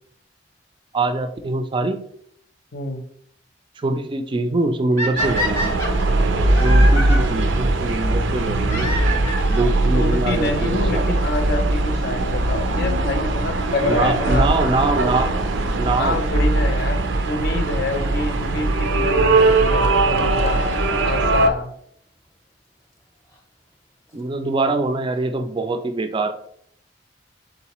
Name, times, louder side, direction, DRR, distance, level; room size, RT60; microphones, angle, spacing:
voice 1, 0.9-2.0 3.8-5.8 6.6-8.9 9.5-11.2 13.9-15.4 15.8-16.2 24.1-26.3, right 2 dB, 25° right, 8 dB, 0.4 m, -23 dB
voice 2, 2.7-3.0 9.9-14.5 15.9-20.8 21.0-21.7, left 3 dB, 60° left, 6 dB, 0.6 m, -27 dB
sound 1, 5.0-7.2 8.7-9.7 10.7-10.8 11.4-11.5 11.7-11.8 13.7-14.0 16.8-16.9 17.9-18.0 19.5-19.6 19.8-19.9 20.2-20.3 20.5-20.6 20.7-20.8 21.0-21.1 21.3-21.4, equal, 15° left, 0.7 m, -27 dB
sound 2, 5.2-21.5, right 2 dB, 85° right, 0.5 m, -20 dB
3.9 x 3.9 x 2.9 m, 0.67 s
head